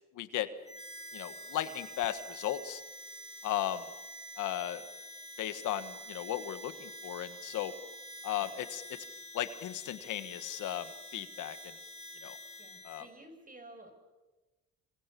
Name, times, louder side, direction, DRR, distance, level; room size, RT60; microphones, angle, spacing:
voice 1, 0.1-0.5 1.1-2.8 3.4-3.9 4.4-4.9 5.4-7.7 8.2-8.8 9.3-11.6 12.2-12.4 12.8-13.0, left 12 dB, 85° left, 11 dB, 1.6 m, -36 dB
Harmonica, 0.6-13.1, equal, 20° left, 5.7 m, -48 dB
voice 2, 12.6-14.0, right 1 dB, 25° right, 6 dB, 7.1 m, -53 dB
26.5 x 26.0 x 7.0 m, 1.2 s
cardioid pair, 90°, 30 cm